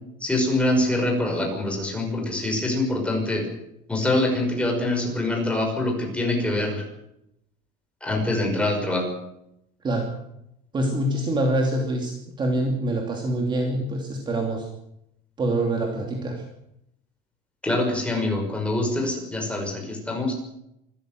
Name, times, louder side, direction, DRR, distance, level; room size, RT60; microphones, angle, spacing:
voice 1, 0.2-3.5 3.9-6.8 8.0-9.1 17.6-20.3, left 2 dB, 5° left, 1 dB, 6.0 m, -24 dB
voice 2, 9.8-10.2 10.7-14.7 15.4-16.4, right 1 dB, 20° right, 2 dB, 2.9 m, -25 dB
25.0 x 14.5 x 7.8 m, 0.81 s
cardioid pair, 165°, 21 cm